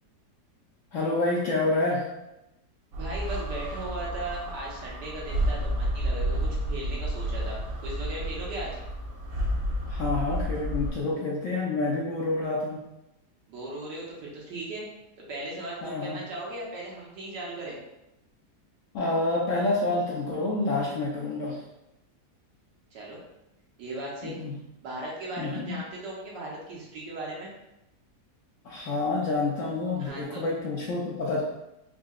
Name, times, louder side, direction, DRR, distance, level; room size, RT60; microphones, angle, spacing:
voice 1, 0.9-2.0 9.9-12.8 15.8-16.2 18.9-21.6 24.2-24.5 25.4-25.7 28.6-31.4, left 2 dB, 70° left, -3 dB, 0.8 m, -28 dB
sound 1, 2.9-10.9, right 1 dB, 70° right, 1.0 m, -31 dB
voice 2, 3.0-8.8 13.5-14.9 15.3-17.8 22.9-23.2 23.8-24.4 24.8-27.5 30.0-30.4, right 1 dB, 85° right, -4 dB, 1.6 m, -37 dB
4.0 x 2.7 x 2.4 m, 0.91 s
omnidirectional pair, 1.8 m